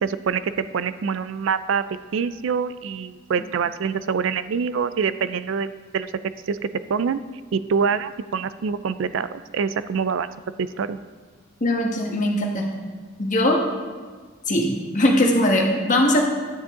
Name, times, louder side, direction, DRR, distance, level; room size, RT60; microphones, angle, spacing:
voice 1, 0.0-1.8 2.1-6.1 6.5-7.2 7.5-10.3 10.6-11.0, right 6 dB, 70° right, 14 dB, 0.4 m, -25 dB
voice 2, 11.6-12.7 13.2-13.7 14.5-14.7 14.9-16.2, left 1 dB, 40° left, 0 dB, 1.5 m, -20 dB
10.0 x 9.9 x 3.7 m, 1.5 s
head